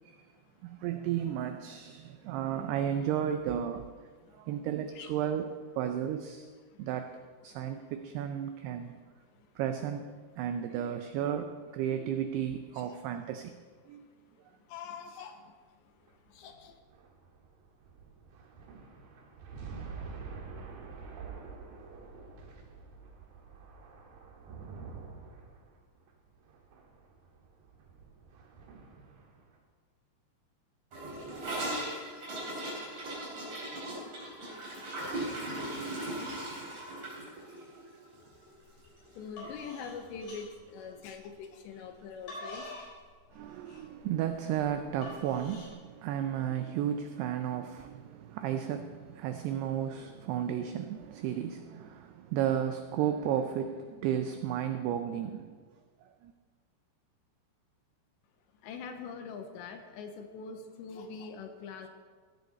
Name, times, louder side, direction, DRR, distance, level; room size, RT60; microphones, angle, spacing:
voice 1, 0.6-6.5 6.8-7.2 7.4-9.0 9.6-10.1 10.4-13.5 13.9-14.0 43.3-55.6 56.0-56.3, right 9 dB, 90° right, 7 dB, 2.3 m, -33 dB
voice 2, 14.7-15.4 16.3-16.7 39.2-42.8 58.6-61.9, left 5 dB, 80° left, 6 dB, 3.0 m, -43 dB
sound 1, 16.0-29.6, right 5 dB, 60° right, 2.7 m, -47 dB
Gurgling / Toilet flush, 30.9-39.2 39.4-39.6 39.9-40.3 40.6-40.7 41.0-41.1 42.0-42.1, right 1 dB, 40° right, 5.4 m, -38 dB
sound 2, 38.5-38.8 39.2-41.3 41.9-45.7, left 1 dB, 45° left, 5.2 m, -46 dB
15.5 x 10.5 x 4.2 m, 1.5 s
omnidirectional pair, 5.4 m